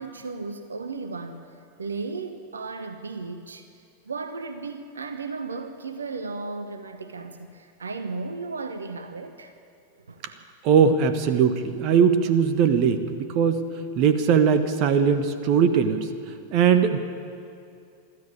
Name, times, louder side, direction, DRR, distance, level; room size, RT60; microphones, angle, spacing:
voice 1, 0.0-1.5 1.8-3.7 4.1-9.5 10.1-10.2, right 4 dB, 75° right, 9 dB, 1.1 m, -35 dB
voice 2, 10.6-13.6 14.0-16.1 16.5-17.0, right 7 dB, 40° right, 10 dB, 1.4 m, -20 dB
24.0 x 13.5 x 8.6 m, 2.4 s
figure-of-eight pair, 90°, 0 cm